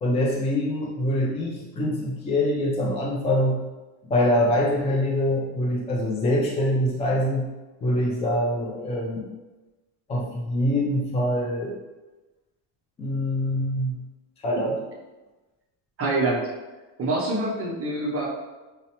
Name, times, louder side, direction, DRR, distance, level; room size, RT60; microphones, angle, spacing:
voice 1, 0.0-3.6 4.1-7.5 7.8-9.3 10.1-11.7 13.0-14.0 14.4-14.8, left 1 dB, 15° left, -3 dB, 0.3 m, -24 dB
voice 2, 16.0-16.4 17.0-18.3, right 2 dB, 30° right, -5 dB, 0.6 m, -25 dB
5.2 x 2.1 x 2.8 m, 1.1 s
cardioid pair, 170°, 45 cm